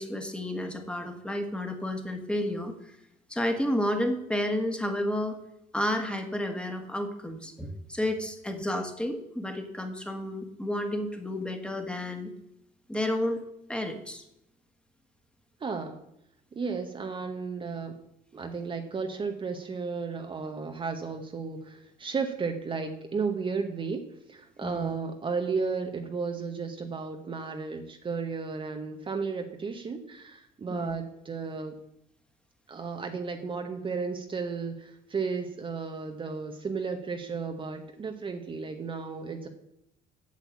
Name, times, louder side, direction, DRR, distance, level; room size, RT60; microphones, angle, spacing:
voice 1, 0.0-2.7 3.3-5.4 5.7-12.3 12.9-13.4 13.7-14.2 24.6-24.9 30.7-30.9, left 1 dB, 5° left, 5 dB, 1.6 m, -31 dB
voice 2, 15.6-16.0 16.5-18.0 18.3-31.7 32.7-39.5, right 5 dB, 30° right, 5 dB, 1.0 m, -34 dB
8.3 x 6.8 x 8.2 m, 0.81 s
cardioid pair, 110°, 17 cm